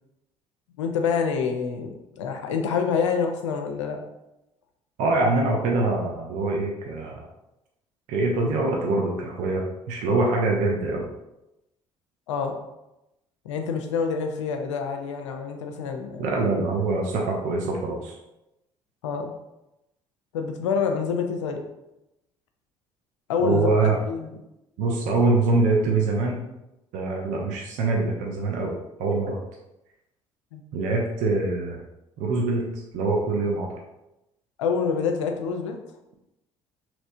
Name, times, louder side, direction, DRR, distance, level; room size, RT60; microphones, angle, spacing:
voice 1, 0.8-4.0 12.3-12.6 13.4-16.3 19.0-19.3 20.3-21.7 23.3-23.7 24.1-24.4 30.5-30.6 34.6-35.8, left 6 dB, 70° left, 4 dB, 0.4 m, -27 dB
voice 2, 5.0-7.3 8.1-11.1 16.2-18.2 23.4-24.0 24.8-26.4 26.9-29.4 30.7-31.8 32.2-32.6 32.9-33.8, right 3 dB, 55° right, -1 dB, 0.5 m, -24 dB
3.1 x 2.9 x 2.7 m, 0.91 s
figure-of-eight pair, 50°, 16 cm